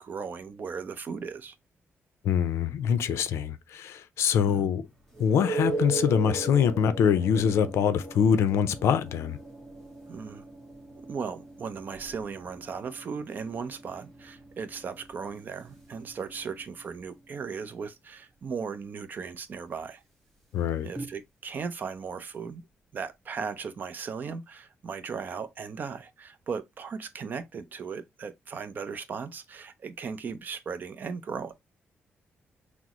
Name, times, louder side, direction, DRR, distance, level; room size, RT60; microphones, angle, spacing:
voice 1, 0.0-1.6 4.5-4.7 10.1-10.4 11.1-20.0 20.8-22.6 22.9-31.5, right 5 dB, 45° right, 0.5 m, -37 dB
voice 2, 2.2-4.9 5.2-9.4 20.5-20.9, left 7 dB, 90° left, 0.5 m, -24 dB
sound 1, 5.1-16.7 21.0-21.1, right 2 dB, ahead, 1.4 m, -38 dB
6.0 x 2.0 x 2.9 m
wide cardioid pair, 150°, 4 cm